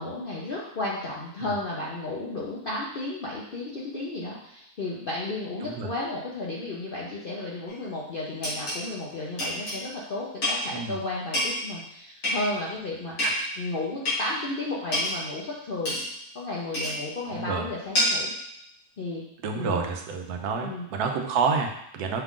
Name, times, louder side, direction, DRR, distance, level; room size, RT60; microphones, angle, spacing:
voice 1, 0.0-13.2 13.6-16.0 16.3-18.3 19.0-19.2 19.6-19.8 20.6-20.9, left 2 dB, 60° left, -4 dB, 0.6 m, -33 dB
sound 1, 7.7-7.8 8.4-8.8 9.4-9.8 10.4-10.7 11.3-11.6 12.2-12.7 13.2-13.5 14.1-14.3 14.9-15.2 15.9-16.1 16.7-17.0 18.0-18.3, left 1 dB, 85° left, 2.4 m, -27 dB
voice 2, 17.3-17.6 19.4-22.2, right 5 dB, 80° right, 3 dB, 1.1 m, -28 dB
5.7 x 2.4 x 3.6 m, 0.75 s
omnidirectional pair, 1.6 m